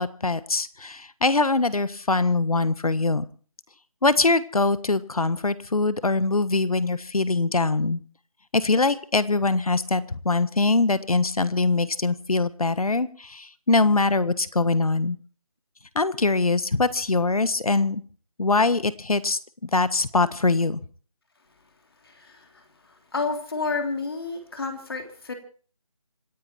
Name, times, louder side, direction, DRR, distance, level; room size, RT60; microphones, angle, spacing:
voice 1, 0.0-3.2 4.0-8.0 8.5-15.2 15.9-18.0 18.4-20.8, left 3 dB, 90° left, 15 dB, 1.5 m, -23 dB
voice 2, 22.0-22.4 23.1-25.3, left 4 dB, 45° left, 5 dB, 3.0 m, -30 dB
27.0 x 10.0 x 4.3 m, 0.41 s
figure-of-eight pair, 175°, 18 cm